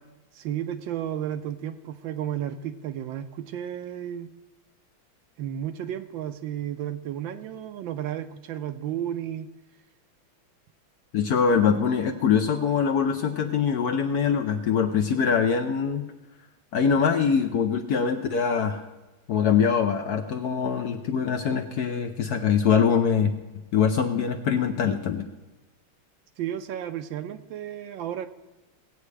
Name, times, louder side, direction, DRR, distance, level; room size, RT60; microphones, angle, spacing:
voice 1, 0.3-4.3 5.4-9.5 26.4-28.3, right 10 dB, 80° right, 9 dB, 1.3 m, -33 dB
voice 2, 11.1-16.1 16.7-18.8 19.3-23.3 23.7-25.2, left 6 dB, 70° left, 6 dB, 1.0 m, -23 dB
18.5 x 8.3 x 3.3 m, 1.1 s
omnidirectional pair, 2.2 m